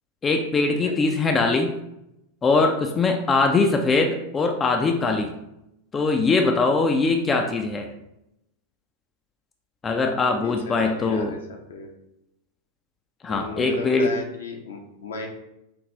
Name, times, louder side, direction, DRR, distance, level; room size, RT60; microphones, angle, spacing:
voice 1, 0.2-1.7 2.4-5.3 5.9-7.9 9.8-11.3 13.2-14.1, left 3 dB, 20° left, 3 dB, 0.4 m, -22 dB
voice 2, 10.4-11.4 11.7-11.9 13.3-15.3, left 4 dB, 65° left, 1 dB, 0.7 m, -34 dB
5.0 x 2.5 x 3.0 m, 0.85 s
figure-of-eight pair, 90°, 0 cm